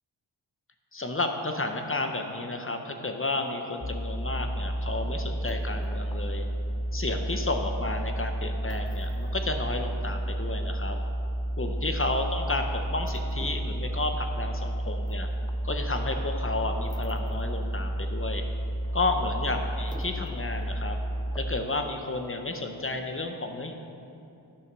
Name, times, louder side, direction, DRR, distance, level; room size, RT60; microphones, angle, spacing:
voice 1, 0.9-6.5 6.9-11.0 11.6-15.3 15.6-18.4 18.9-21.0 21.3-23.7, left 2 dB, 30° left, 5 dB, 0.8 m, -32 dB
sound 1, 3.8-21.6, right 1 dB, 10° left, 0.3 m, -31 dB
9.7 x 5.6 x 6.0 m, 2.7 s
wide cardioid pair, 70°, 45 cm